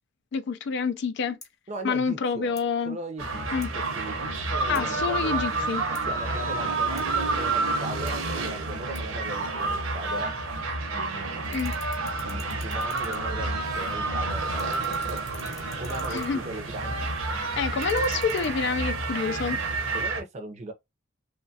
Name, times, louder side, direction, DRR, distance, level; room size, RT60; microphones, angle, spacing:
voice 1, 0.3-1.4 1.8-3.0 3.5-3.7 4.7-5.8 11.5-11.7 16.1-16.4 17.6-19.6, left 5 dB, 55° left, 0.3 m, -27 dB
sound 1, 1.4-1.6 2.5-2.7 3.6-3.8 4.7-4.9 5.9-6.1 7.0-7.1 8.1-8.2 8.9-9.1 9.6-9.7 10.4-11.1 11.4-14.1 14.4-16.4 17.6-18.5, left 4 dB, 15° left, 0.8 m, -49 dB
voice 2, 1.7-2.6 2.8-5.4 6.1-10.3 10.8-11.5 12.2-15.2 15.8-17.4 19.9-20.7, right 1 dB, 35° right, 0.5 m, -38 dB
sound 2, 3.2-20.2, right 3 dB, 75° right, 0.7 m, -29 dB
sound 3, 14.3-20.1, left 4 dB, 85° left, 0.7 m, -50 dB
3.0 x 2.2 x 2.6 m
head